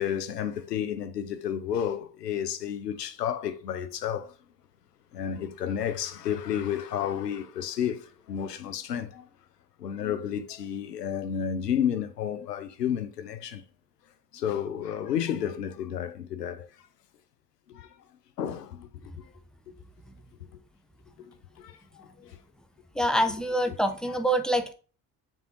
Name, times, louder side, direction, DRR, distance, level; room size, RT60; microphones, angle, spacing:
voice 1, 0.0-4.3 5.1-9.3 9.8-13.6 14.3-16.7 17.7-17.9 18.4-19.3 21.2-22.4 24.1-24.2, left 9 dB, 85° left, 0.7 m, -31 dB
voice 2, 22.9-24.7, right 1 dB, ahead, 1.1 m, -25 dB
6.9 x 3.6 x 4.6 m
figure-of-eight pair, 45°, 47 cm